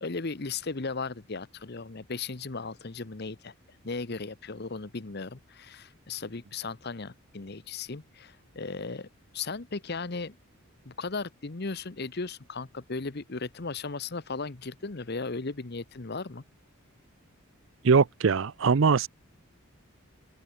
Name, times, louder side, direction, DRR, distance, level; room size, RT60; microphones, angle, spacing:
voice 1, 0.0-3.5 3.8-9.1 9.3-10.4 10.8-16.4, left 4 dB, 50° left, 0.9 m, -36 dB
voice 2, 17.8-19.1, right 5 dB, 60° right, 0.5 m, -21 dB
head